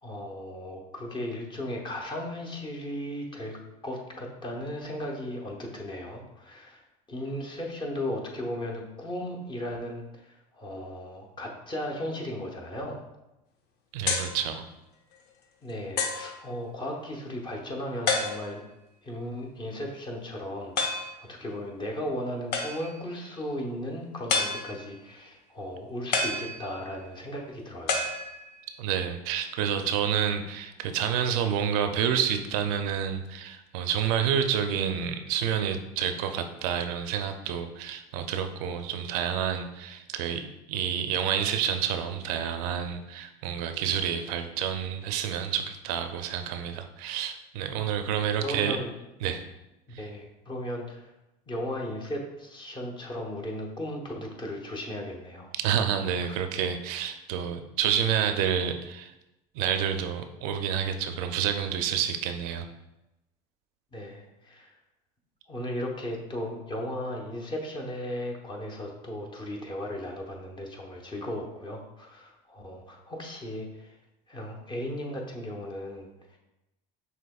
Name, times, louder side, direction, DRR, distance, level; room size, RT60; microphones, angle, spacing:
voice 1, 0.0-3.6 3.8-13.0 15.6-18.6 19.0-28.1 48.4-48.9 50.0-51.1 51.5-55.5 56.3-56.4 63.9-64.8 65.5-74.0 74.3-76.4, left 1 dB, 25° left, 1 dB, 0.9 m, -36 dB
voice 2, 13.9-14.7 28.8-48.8 49.2-49.4 55.6-59.1 59.5-62.7, right 8 dB, 80° right, 8 dB, 0.4 m, -29 dB
sound 1, 14.0-14.4 15.1-15.2 16.0-16.3 18.1-18.7 20.8-21.2 22.5-23.0 24.3-25.0 26.1-27.0 27.9-28.7, left 3 dB, 60° left, 0.6 m, -29 dB
5.8 x 2.9 x 2.3 m, 0.94 s
supercardioid pair, 95°, 19 cm